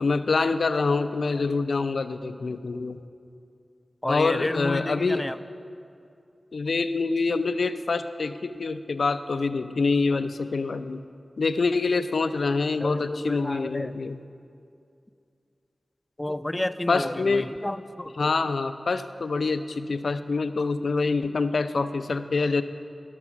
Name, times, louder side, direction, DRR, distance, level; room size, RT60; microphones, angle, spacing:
voice 1, 0.0-3.0 4.1-5.3 6.5-11.0 11.4-14.2 16.9-17.5 18.1-22.6, left 4 dB, 80° left, 10 dB, 0.4 m, -26 dB
voice 2, 4.0-5.4 12.8-14.0 16.2-18.3, left 1 dB, 20° left, 12 dB, 0.4 m, -31 dB
16.0 x 6.0 x 7.1 m, 2.5 s
cardioid pair, 40°, 0 cm